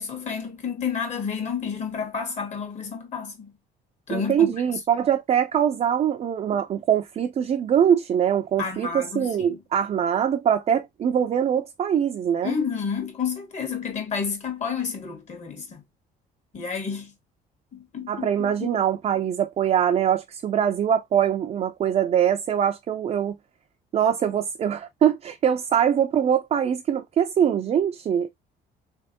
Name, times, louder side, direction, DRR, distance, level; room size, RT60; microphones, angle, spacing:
voice 1, 0.0-3.5 4.1-4.5 8.6-9.6 12.4-15.8 16.5-17.1 17.7-18.8, left 6 dB, 45° left, 1.5 m, -30 dB
voice 2, 4.1-12.5 18.1-23.4 23.9-28.3, right 9 dB, 40° right, 0.5 m, -23 dB
3.4 x 3.3 x 2.8 m
cardioid pair, 110°, 17 cm